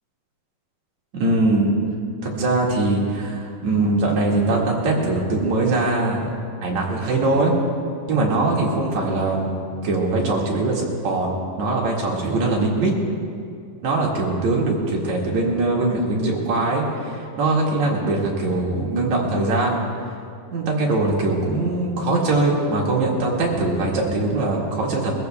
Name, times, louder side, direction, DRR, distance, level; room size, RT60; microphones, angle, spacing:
voice 1, 1.1-1.7 2.2-6.3 6.6-7.5 8.1-11.3 11.6-12.9 13.8-19.8 20.5-25.1, right 2 dB, 55° right, -2 dB, 3.0 m, -21 dB
22.5 x 15.0 x 3.5 m, 2.4 s
omnidirectional pair, 4.2 m